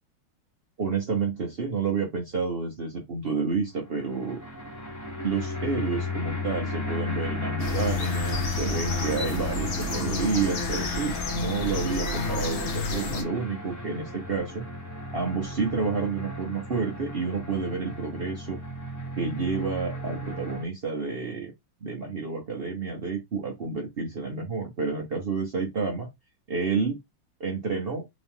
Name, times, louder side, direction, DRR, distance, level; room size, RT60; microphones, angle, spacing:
voice 1, 0.8-4.4 5.2-14.6 15.1-18.6 19.2-21.5 21.8-26.1 26.5-27.0 27.4-28.1, right 4 dB, 75° right, 0.5 m, -29 dB
sound 1, 3.8-20.6, left 2 dB, 25° left, 0.4 m, -34 dB
sound 2, 7.6-13.2, left 2 dB, 80° left, 0.6 m, -31 dB
3.8 x 3.0 x 3.5 m
omnidirectional pair, 2.4 m